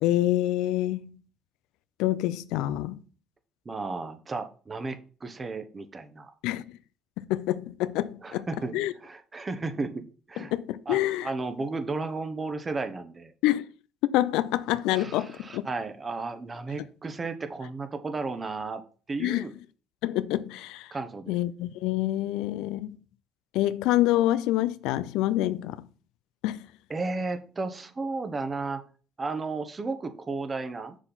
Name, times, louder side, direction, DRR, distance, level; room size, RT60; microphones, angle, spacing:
voice 1, 0.0-1.2 2.0-3.0 6.4-6.6 7.2-8.5 8.7-8.9 10.5-11.3 13.4-13.7 14.0-15.7 19.2-19.4 20.0-20.9 21.3-23.0 23.5-25.8 26.4-26.7, left 15 dB, 85° left, 0.4 m, -26 dB
voice 2, 3.6-6.3 8.2-10.5 10.9-13.3 14.9-18.8 19.1-19.5 20.9-21.3 26.9-28.8 29.2-31.0, right 3 dB, 30° right, 1.1 m, -34 dB
6.3 x 5.7 x 4.0 m
supercardioid pair, 70°, 0 cm